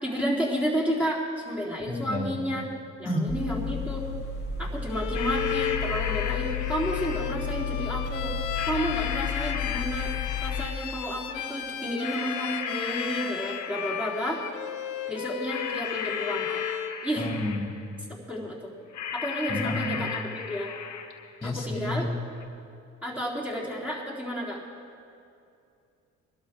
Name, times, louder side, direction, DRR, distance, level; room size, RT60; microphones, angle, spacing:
voice 1, 0.0-2.7 3.0-4.0 4.6-8.3 8.7-10.1 10.4-14.4 15.1-16.6 17.0-17.3 18.3-18.7 19.1-20.7 21.4-22.1 23.0-24.6, equal, 5° right, -4 dB, 3.7 m, -31 dB
voice 2, 1.9-2.5 3.0-3.3 17.2-17.7 19.5-20.1 21.4-22.1, left 1 dB, 20° left, 0 dB, 2.7 m, -30 dB
at a fastfood window, 3.3-10.7, left 6 dB, 35° left, 2.0 m, -32 dB
Bowed string instrument, 4.9-17.0, left 10 dB, 85° left, 0.7 m, -35 dB
sound 1, 5.1-7.5 8.5-11.0 12.0-14.4 15.5-17.9 18.9-21.4 22.4-22.5, left 7 dB, 70° left, 1.0 m, -35 dB
22.0 x 12.0 x 3.7 m, 2.5 s
cardioid pair, 90°, 30 cm